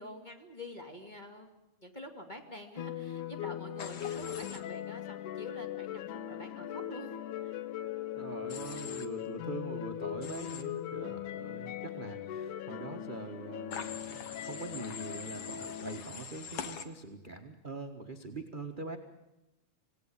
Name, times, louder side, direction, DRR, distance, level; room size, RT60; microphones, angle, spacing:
voice 1, 0.0-7.1 7.4-7.6, left 1 dB, 15° left, 4 dB, 2.3 m, -47 dB
sound 1, 2.8-16.0, left 11 dB, 85° left, 2.5 m, -40 dB
Human voice / Train, 3.8-4.6 8.5-9.1 10.2-10.6 13.7-16.8, left 6 dB, 55° left, 2.3 m, -43 dB
voice 2, 8.1-19.0, right 3 dB, 30° right, 3 dB, 1.0 m, -43 dB
27.0 x 18.5 x 8.9 m, 0.98 s
omnidirectional pair, 3.4 m